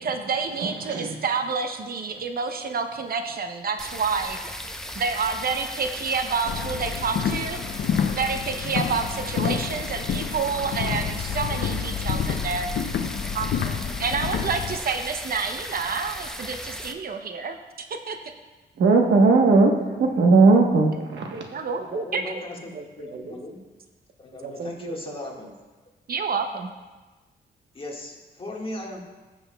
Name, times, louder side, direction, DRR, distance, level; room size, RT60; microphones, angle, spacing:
voice 1, 0.0-4.4 5.0-7.6 8.1-12.7 13.3-18.2 21.3-22.2 22.7-22.8 23.1-23.4 24.4-25.3 26.1-26.7, right 5 dB, 60° right, 6 dB, 0.7 m, -29 dB
voice 2, 0.6-1.2 18.8-21.4, right 3 dB, 85° right, 2 dB, 1.1 m, -18 dB
sound 1, 3.8-16.9, equal, 5° left, 0.7 m, -37 dB
sound 2, 6.5-14.8, left 7 dB, 75° left, 0.5 m, -29 dB
voice 3, 21.6-23.6 24.2-25.6 27.7-29.0, left 1 dB, 30° left, -1 dB, 1.7 m, -38 dB
15.5 x 7.0 x 2.3 m, 1.2 s
cardioid pair, 90°, 18 cm